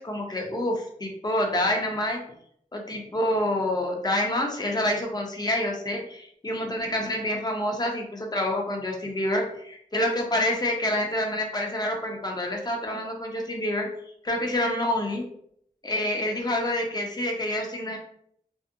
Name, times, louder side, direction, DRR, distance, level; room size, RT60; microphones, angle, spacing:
voice 1, 0.0-2.2 2.7-13.9 14.2-15.2 15.8-18.0, left 1 dB, 25° left, 0 dB, 0.7 m, -27 dB
2.6 x 2.0 x 2.5 m, 0.66 s
cardioid pair, 40°, 15 cm